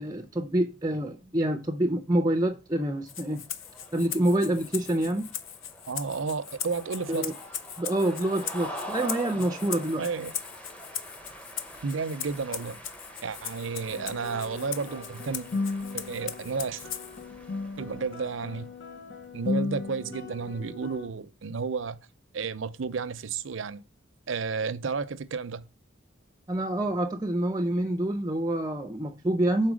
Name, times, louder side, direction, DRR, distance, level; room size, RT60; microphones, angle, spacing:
voice 1, 0.0-3.4 3.9-5.3 7.1-7.3 7.8-10.1 26.5-29.7, right 1 dB, 20° right, 0.5 m, -27 dB
Rattle (instrument), 3.1-17.3, left 9 dB, 85° left, 0.6 m, -39 dB
sound 1, 3.1-18.7, equal, 5° left, 0.9 m, -45 dB
voice 2, 5.9-7.3 9.8-10.3 11.8-12.8 13.2-15.5 15.9-16.8 17.8-18.7 19.3-22.0 22.3-23.8 24.3-25.6, right 5 dB, 75° right, 0.6 m, -32 dB
sound 2, 13.9-21.1, left 3 dB, 60° left, 0.9 m, -36 dB
6.0 x 4.4 x 6.2 m
head